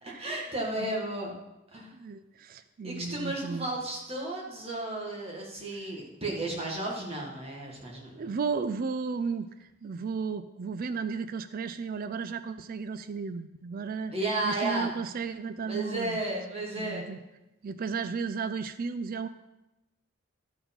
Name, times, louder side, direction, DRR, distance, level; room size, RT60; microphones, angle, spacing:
voice 1, 0.0-1.3 1.7-1.9 2.8-8.3 14.1-14.9 15.7-17.2, right 2 dB, 30° right, -2 dB, 1.9 m, -33 dB
voice 2, 1.9-3.7 8.1-14.1 14.4-16.2 16.8-17.2 17.6-19.3, right 5 dB, 45° right, 11 dB, 0.4 m, -34 dB
13.0 x 4.7 x 5.4 m, 0.95 s
head